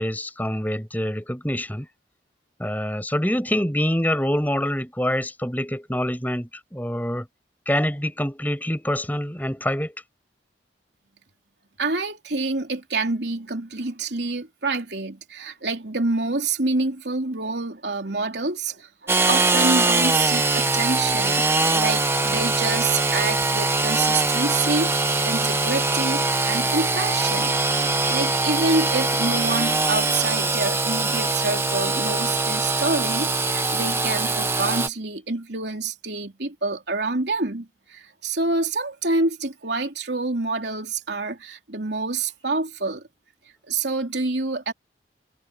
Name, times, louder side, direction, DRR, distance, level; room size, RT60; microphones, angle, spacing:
voice 1, 0.0-1.9 2.6-7.3 7.7-9.9, equal, 10° left, 5.7 m, -25 dB
voice 2, 11.8-27.6 27.9-43.0 43.7-44.7, right 3 dB, 70° right, 3.2 m, -27 dB
Engine / Sawing, 19.1-34.9, right 3 dB, 15° right, 1.1 m, -22 dB
head